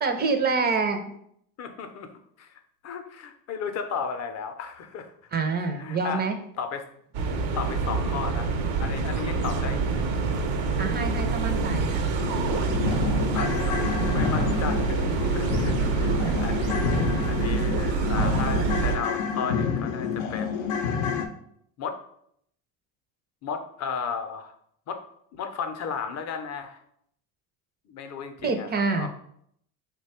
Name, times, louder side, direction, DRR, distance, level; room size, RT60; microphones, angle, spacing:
voice 1, 0.0-1.0 5.3-6.4 10.8-11.9 16.2-16.3 28.4-29.1, right 4 dB, 25° right, 6 dB, 0.4 m, -26 dB
voice 2, 1.6-2.1 2.4-5.1 5.6-6.3 6.6-6.9 7.5-8.5 8.8-10.1 13.3-20.9 21.8-22.0 23.4-24.5 24.9-25.0 25.3-26.8 27.9-29.1, left 6 dB, 40° left, 7 dB, 0.5 m, -35 dB
sound 1, 7.1-19.0, right 4 dB, 75° right, 0.7 m, -26 dB
sound 2, 12.2-21.3, left 6 dB, 85° left, 0.6 m, -29 dB
3.0 x 2.2 x 4.2 m, 0.69 s
supercardioid pair, 95°, 41 cm